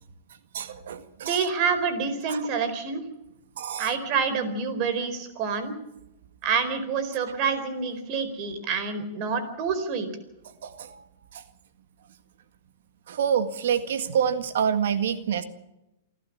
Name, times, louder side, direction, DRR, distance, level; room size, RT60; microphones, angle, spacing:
voice 1, 0.5-1.4 2.3-2.5 3.6-3.9 10.6-11.0 11.3-11.4 13.1-15.4, right 8 dB, 70° right, 10 dB, 1.8 m, -27 dB
voice 2, 1.3-3.0 3.8-5.7 6.4-10.1, right 5 dB, 45° right, 10 dB, 4.5 m, -27 dB
28.0 x 12.0 x 8.6 m, 0.91 s
hypercardioid pair, 115°, 0 cm